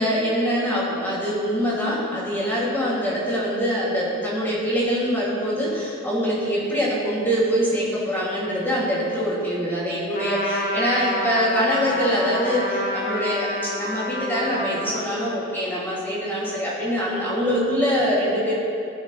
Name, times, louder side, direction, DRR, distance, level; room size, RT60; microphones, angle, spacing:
voice 1, 0.0-18.6, equal, 10° left, -9 dB, 3.2 m, -24 dB
Trumpet, 10.1-15.1, left 1 dB, 45° left, 1.2 m, -28 dB
19.5 x 8.1 x 3.6 m, 2.7 s
head